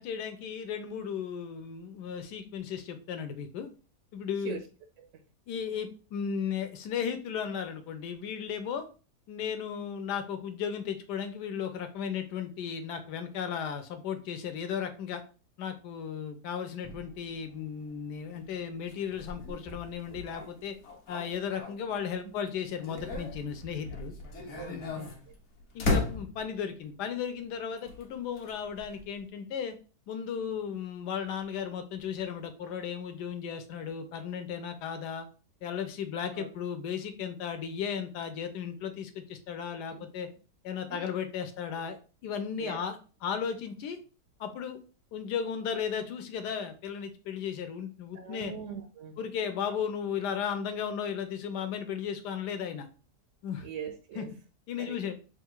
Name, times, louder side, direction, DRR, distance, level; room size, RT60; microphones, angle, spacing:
voice 1, 0.0-3.7 4.1-4.6 5.5-8.9 9.3-15.2 15.6-20.8 21.1-24.1 24.7-25.1 25.7-29.8 30.1-35.3 35.6-40.3 40.6-42.0 42.2-44.0 44.4-44.8 45.1-48.5 49.2-52.9 53.4-53.7 54.2-54.3 54.7-55.2, left 7 dB, 80° left, 1.2 m, -35 dB
sound 1, 16.8-22.2 22.6-26.8 27.8-29.2, left 3 dB, 50° left, 1.0 m, -37 dB
voice 2, 24.9-25.3 36.3-36.5 39.9-40.1 40.9-41.1 42.6-42.9 48.1-49.2 53.6-54.3 54.8-55.1, right 8 dB, 75° right, 0.7 m, -41 dB
3.4 x 2.4 x 4.4 m
omnidirectional pair, 1.8 m